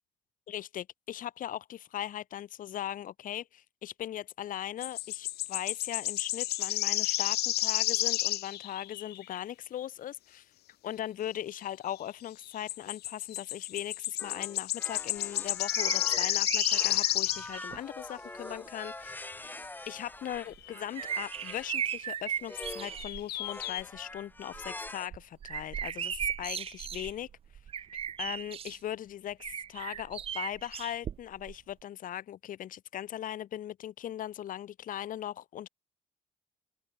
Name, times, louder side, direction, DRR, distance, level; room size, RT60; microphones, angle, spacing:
voice 1, 0.5-10.4 10.8-19.3 19.9-27.3 28.2-29.4 29.7-35.7, left 11 dB, 55° left, 1.0 m, -39 dB
sound 1, 4.8-9.4 12.7-17.5 20.7-20.8 22.6-22.7 23.0-23.8, left 15 dB, 70° left, 1.3 m, -31 dB
sound 2, 14.2-21.8 22.4-23.0 23.4-25.1, left 2 dB, 10° left, 1.3 m, -45 dB
sound 3, 15.7-17.8 18.6-18.7 20.3-23.2 23.6-24.0 24.4-28.8 29.4-31.5 31.8-31.9, right 9 dB, 35° right, 0.4 m, -37 dB
open air
cardioid pair, 110°, 17 cm